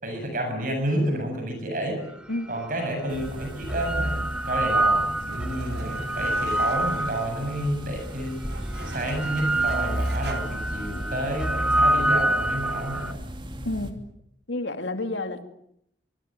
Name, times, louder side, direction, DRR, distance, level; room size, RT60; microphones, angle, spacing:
voice 1, 0.0-2.0 2.5-8.4 8.8-13.2, right 1 dB, 50° right, 4 dB, 7.8 m, -30 dB
sound 1, 2.4-2.5 3.4-7.7 8.4-13.1, right 1 dB, 5° right, 1.3 m, -26 dB
sound 2, 3.1-13.9, equal, 30° right, 2.8 m, -39 dB
sound 3, 4.9-10.4, right 2 dB, 65° right, 3.6 m, -42 dB
voice 2, 14.5-15.5, left 2 dB, 85° left, 7 dB, 2.8 m, -29 dB
24.5 x 23.0 x 9.0 m, 0.75 s
head